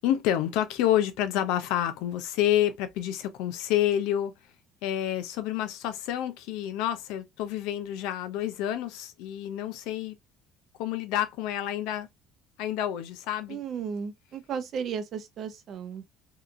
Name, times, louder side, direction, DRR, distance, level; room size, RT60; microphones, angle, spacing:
voice 1, 0.0-4.3 4.8-10.2 10.8-12.1 12.6-13.6, left 12 dB, 80° left, 0.5 m, -28 dB
voice 2, 13.5-16.0, right 7 dB, 50° right, 0.6 m, -34 dB
2.8 x 2.4 x 2.4 m
cardioid pair, 120°, 0 cm